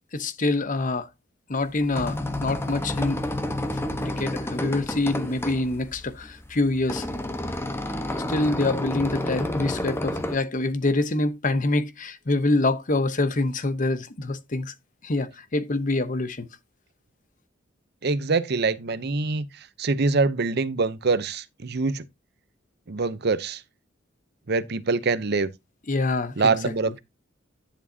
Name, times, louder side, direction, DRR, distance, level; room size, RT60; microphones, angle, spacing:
voice 1, 0.1-1.1 1.5-3.2 4.0-7.1 8.3-14.7 15.0-16.5 25.9-26.5, left 2 dB, 45° left, 0.9 m, -25 dB
sound 1, 1.6-10.4, left 1 dB, 15° left, 1.1 m, -30 dB
voice 2, 18.0-19.5 19.8-22.1 22.9-23.6 24.5-25.5 26.4-27.0, right 4 dB, 60° right, 0.8 m, -24 dB
10.5 x 7.2 x 2.8 m
head